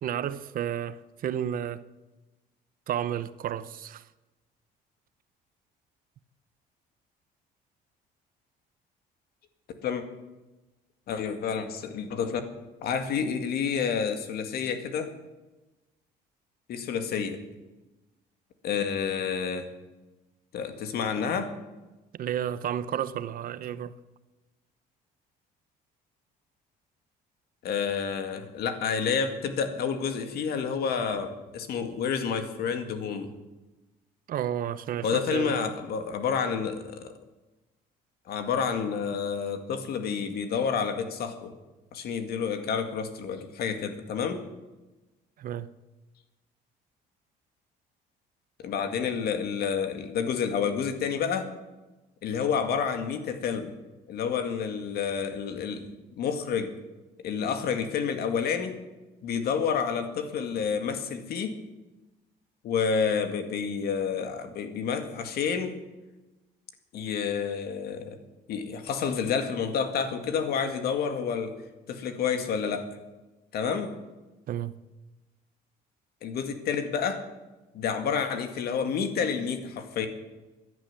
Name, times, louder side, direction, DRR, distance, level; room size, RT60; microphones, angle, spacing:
voice 1, 0.0-1.8 2.9-4.0 22.1-24.0 34.3-35.6 45.4-45.7 74.5-74.7, right 10 dB, 55° right, 0.8 m, -31 dB
voice 2, 11.1-12.4 12.8-15.1 16.7-17.4 18.6-19.7 20.5-21.5 27.6-33.3 35.0-37.1 38.3-41.5 41.9-44.4 48.6-51.5 52.2-53.8 54.1-55.9 56.2-56.7 57.2-58.8 59.2-61.6 62.6-65.8 66.9-68.2 68.5-71.6 71.9-73.0 73.5-74.0 76.2-77.2 77.7-80.1, left 6 dB, 65° left, 2.1 m, -29 dB
15.5 x 10.5 x 7.5 m
cardioid pair, 110°, 17 cm